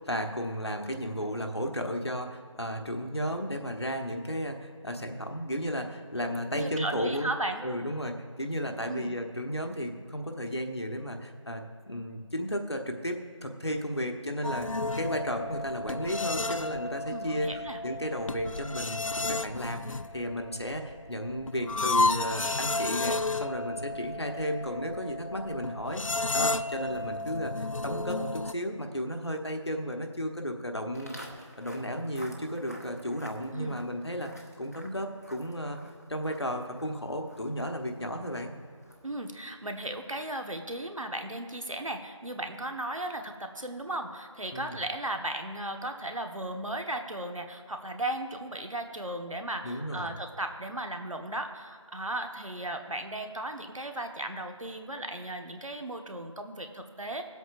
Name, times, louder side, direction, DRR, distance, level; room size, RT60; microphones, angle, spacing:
voice 1, 0.0-7.3 7.6-14.7 15.0-26.0 26.3-31.2 31.6-34.3 34.6-35.8 36.1-38.5 44.5-44.8 49.6-50.1, equal, 55° left, 4 dB, 1.2 m, -34 dB
voice 2, 6.5-7.6 8.9-9.2 17.1-17.8 33.5-33.8 39.0-57.3, right 1 dB, 80° right, 4 dB, 1.3 m, -36 dB
sound 1, 14.4-28.5, left 2 dB, 80° left, 0.5 m, -32 dB
Walk footsteps, 30.9-40.2, equal, 30° left, 0.9 m, -51 dB
20.0 x 8.1 x 2.5 m, 2.2 s
figure-of-eight pair, 175°, 17 cm